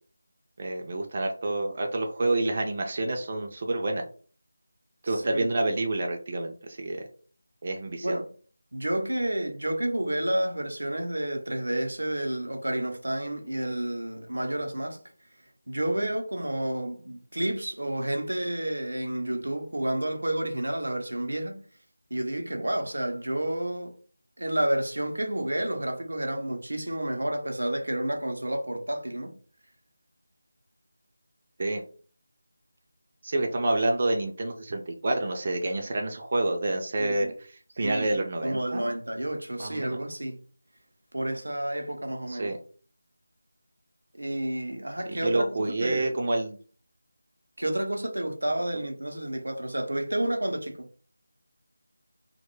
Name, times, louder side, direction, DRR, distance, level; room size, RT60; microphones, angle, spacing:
voice 1, 0.6-4.0 5.0-7.0 7.6-8.2 31.6-31.8 33.2-37.3 37.8-38.9 39.6-40.0 42.3-42.6 45.1-46.6, right 2 dB, 35° right, 0.3 m, -28 dB
voice 2, 5.1-5.5 8.0-8.3 8.7-15.0 15.7-21.6 22.1-23.9 24.4-29.3 37.0-37.3 37.8-38.1 38.4-40.4 41.1-42.5 44.1-46.2 47.6-50.9, right 1 dB, 90° right, 0.5 m, -30 dB
2.1 x 2.0 x 3.0 m
figure-of-eight pair, 170°, 0 cm